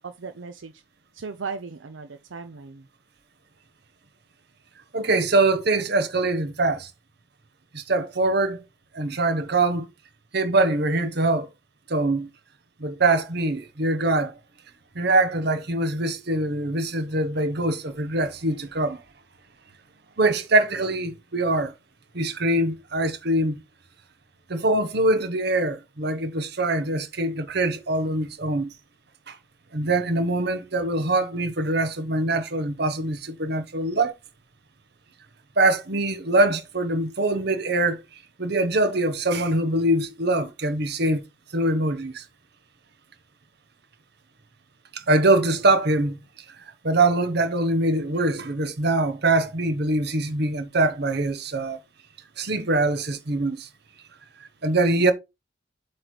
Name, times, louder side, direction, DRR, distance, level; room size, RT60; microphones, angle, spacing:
voice 1, 0.0-0.8 1.1-2.9, right 5 dB, 75° right, 0.6 m, -37 dB
voice 2, 4.9-6.9 7.7-8.6 8.9-9.9 10.3-11.5 11.9-12.3 12.8-14.3 14.9-19.0 20.2-21.7 22.1-23.6 24.5-28.7 29.3-29.4 29.7-34.1 35.6-38.0 38.4-41.2 41.5-42.2 44.9-46.2 46.8-51.8 52.4-53.7 54.4-55.1, right 2 dB, 55° right, 1.0 m, -23 dB
7.8 x 3.3 x 4.4 m
head